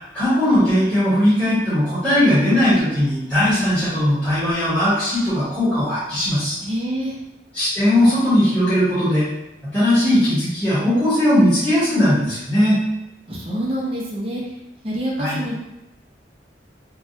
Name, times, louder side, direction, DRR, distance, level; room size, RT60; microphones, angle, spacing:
voice 1, 0.1-6.6 7.5-9.3 9.7-12.8 15.2-15.4, left 1 dB, 5° left, -16 dB, 1.2 m, -18 dB
voice 2, 6.6-7.1 13.3-14.4 14.8-15.6, right 1 dB, 35° right, -3 dB, 0.5 m, -26 dB
3.3 x 2.2 x 2.7 m, 0.92 s
head